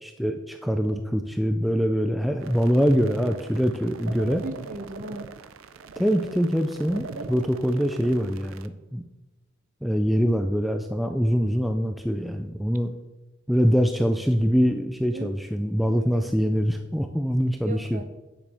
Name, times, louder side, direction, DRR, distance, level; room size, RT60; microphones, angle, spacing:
voice 1, 0.0-4.4 6.0-9.0 9.8-12.9 13.5-18.0, equal, ahead, 5 dB, 0.3 m, -24 dB
sound 1, 2.4-8.7, right 4 dB, 80° right, 0.5 m, -41 dB
voice 2, 4.2-5.3 7.2-7.3 15.1-15.3 15.9-16.2 17.6-18.0, right 2 dB, 40° right, 9 dB, 0.7 m, -38 dB
8.9 x 8.1 x 3.4 m, 1.1 s
head